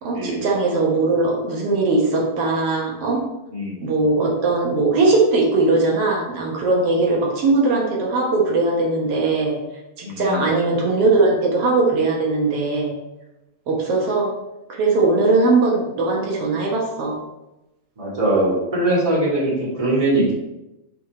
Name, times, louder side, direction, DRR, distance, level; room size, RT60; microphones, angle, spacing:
voice 1, 0.0-3.2 3.8-9.6 10.0-12.9 13.7-14.3 14.8-17.2, right 3 dB, 60° right, -1 dB, 1.6 m, -19 dB
voice 2, 3.5-3.9 7.1-7.2 10.0-10.4 18.0-20.3, right 2 dB, 15° right, -7 dB, 1.5 m, -21 dB
6.0 x 4.7 x 4.2 m, 0.95 s
omnidirectional pair, 4.0 m